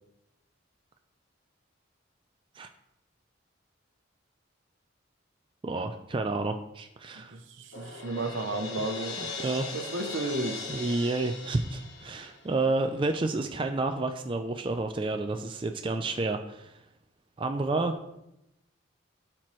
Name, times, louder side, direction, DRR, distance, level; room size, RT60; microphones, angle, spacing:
voice 1, 5.6-7.4 9.2-9.7 10.7-16.8 17.4-18.0, right 2 dB, 25° right, 6 dB, 0.3 m, -30 dB
voice 2, 7.1-9.2 9.7-10.7, right 2 dB, 75° right, 7 dB, 0.8 m, -33 dB
Crash cymbal, 7.7-12.7, left 3 dB, 65° left, 1.1 m, -39 dB
11.5 x 4.4 x 3.1 m, 0.86 s
head